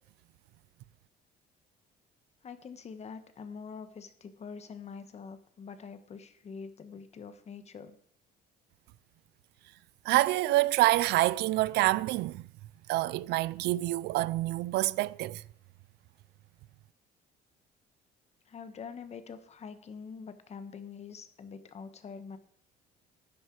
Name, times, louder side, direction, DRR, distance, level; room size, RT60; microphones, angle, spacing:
voice 1, 2.4-7.9 18.5-22.4, left 5 dB, 40° left, 1.4 m, -45 dB
voice 2, 10.0-12.5 12.9-15.4, right 17 dB, 80° right, 0.4 m, -27 dB
12.0 x 10.0 x 4.8 m
cardioid pair, 110°, 17 cm